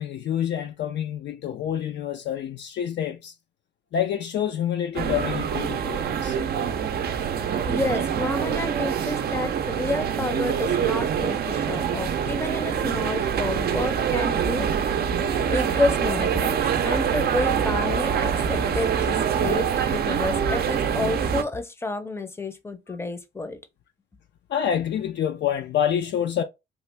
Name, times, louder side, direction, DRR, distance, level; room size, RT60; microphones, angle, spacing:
voice 1, 0.0-3.3 3.9-6.4 24.5-26.4, left 9 dB, 65° left, 0.4 m, -27 dB
sound 1, 4.9-21.4, right 7 dB, 50° right, 0.5 m, -25 dB
voice 2, 7.6-14.9 15.5-23.6, left 2 dB, 10° left, 0.6 m, -30 dB
3.0 x 2.4 x 3.2 m
cardioid pair, 90°, 20 cm